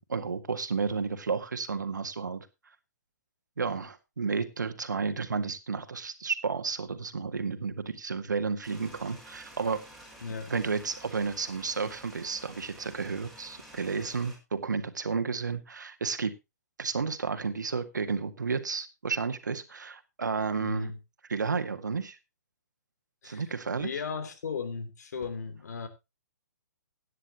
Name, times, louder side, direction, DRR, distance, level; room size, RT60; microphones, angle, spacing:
voice 1, 0.0-2.5 3.6-9.8 10.5-16.3 16.8-20.9 21.3-22.2 23.2-23.9, right 5 dB, 85° right, 1.8 m, -32 dB
sound 1, 8.6-14.4, equal, ahead, 5.1 m, -51 dB
voice 2, 10.2-10.5 20.6-21.0 23.2-23.4 23.8-25.9, left 5 dB, 65° left, 3.0 m, -36 dB
16.5 x 9.9 x 2.9 m
hypercardioid pair, 135°, 10 cm